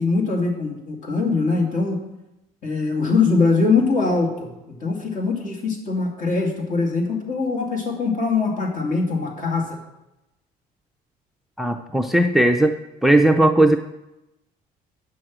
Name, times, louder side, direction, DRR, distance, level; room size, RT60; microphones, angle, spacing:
voice 1, 0.0-2.0 2.6-4.5 4.8-9.7, left 4 dB, 50° left, 0 dB, 2.5 m, -22 dB
voice 2, 11.6-12.7 13.0-13.8, right 1 dB, ahead, 7 dB, 0.4 m, -17 dB
8.7 x 6.3 x 6.1 m, 0.93 s
cardioid pair, 110°, 17 cm